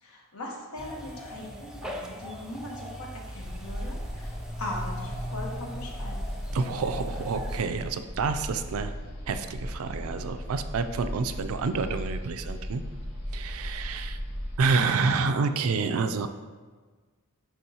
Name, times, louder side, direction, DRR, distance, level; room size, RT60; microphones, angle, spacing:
voice 1, 0.0-6.3, left 1 dB, 85° left, -1 dB, 1.2 m, -40 dB
sound 1, 0.8-7.6, equal, 5° right, 0.4 m, -39 dB
sound 2, 3.4-14.6, equal, 65° left, 1.4 m, -37 dB
voice 2, 6.5-8.9 9.3-12.8 13.3-14.2 14.6-16.3, right 4 dB, 70° right, 9 dB, 0.4 m, -28 dB
9.9 x 3.6 x 2.8 m, 1.4 s
head